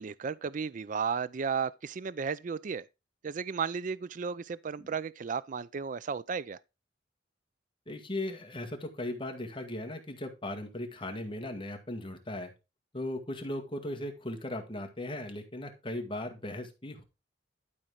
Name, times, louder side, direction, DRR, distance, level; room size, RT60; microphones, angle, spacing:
voice 1, 0.0-2.8 3.2-6.6, right 6 dB, 45° right, 0.4 m, -34 dB
voice 2, 7.9-12.5 12.9-17.0, left 1 dB, 30° left, 1.9 m, -37 dB
12.0 x 4.1 x 5.1 m
head